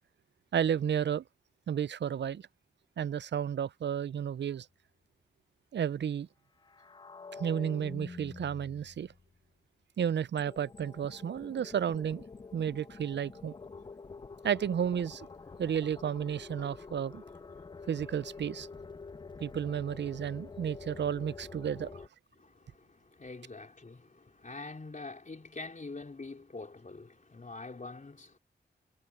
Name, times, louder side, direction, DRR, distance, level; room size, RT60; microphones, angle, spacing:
voice 1, 0.5-1.2 1.7-2.5 3.0-4.7 5.7-6.3 7.4-9.1 10.0-12.3 12.5-13.5 14.4-15.3 15.6-17.2 17.9-18.7 19.4-21.9, right 8 dB, 75° right, 0.4 m, -32 dB
sound 1, 6.6-9.3 10.4-22.1, left 4 dB, 25° left, 0.4 m, -47 dB
voice 2, 22.3-28.4, left 3 dB, 45° left, 3.7 m, -45 dB
wide cardioid pair, 65°, 18 cm